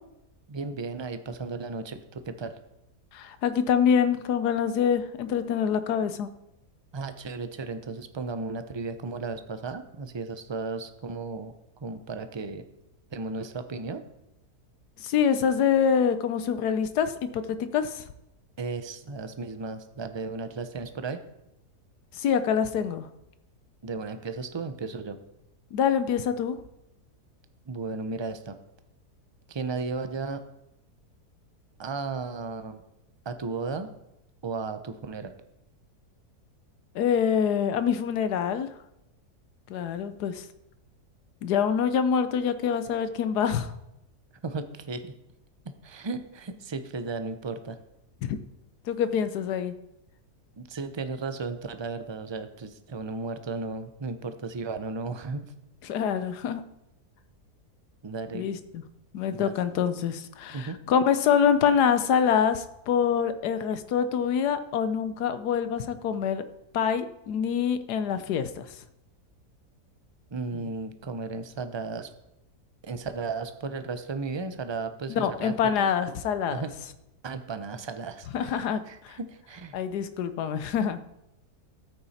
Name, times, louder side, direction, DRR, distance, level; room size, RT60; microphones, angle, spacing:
voice 1, 0.5-2.6 6.9-11.5 11.8-12.6 13.1-14.0 18.6-21.2 23.8-25.2 27.7-28.6 29.5-30.4 31.8-32.8 33.2-33.9 34.4-35.3 44.4-45.1 45.8-47.8 50.6-55.5 58.0-58.5 59.3-59.5 60.5-60.8 70.3-72.1 72.8-75.9 76.5-76.7 77.2-79.8, right 4 dB, 35° right, 9 dB, 0.4 m, -35 dB
voice 2, 3.1-6.3 15.0-18.0 22.1-23.1 25.7-26.6 36.9-38.7 39.7-40.4 41.4-43.7 48.2-48.4 48.9-49.7 55.8-56.6 58.3-58.8 59.1-66.4 66.7-68.7 70.5-70.7 75.1-76.6 78.3-79.2 79.7-81.0, left 7 dB, 90° left, 11 dB, 1.4 m, -25 dB
13.0 x 8.8 x 4.2 m, 0.86 s
omnidirectional pair, 1.7 m